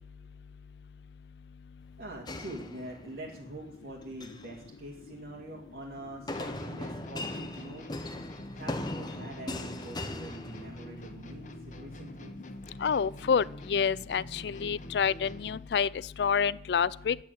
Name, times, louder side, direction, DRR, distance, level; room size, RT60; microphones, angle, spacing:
voice 1, 2.0-7.9 8.5-12.4, right 1 dB, 70° right, -5 dB, 2.3 m, -44 dB
sound 1, 2.3-3.3 4.0-4.5 6.3-11.1, left 1 dB, 25° left, 0.9 m, -39 dB
sound 2, 6.3-15.7, left 1 dB, 45° left, 1.2 m, -45 dB
voice 2, 12.8-15.9 16.2-17.2, left 6 dB, 70° left, 21 dB, 0.4 m, -28 dB
10.0 x 8.4 x 8.9 m, 0.75 s
head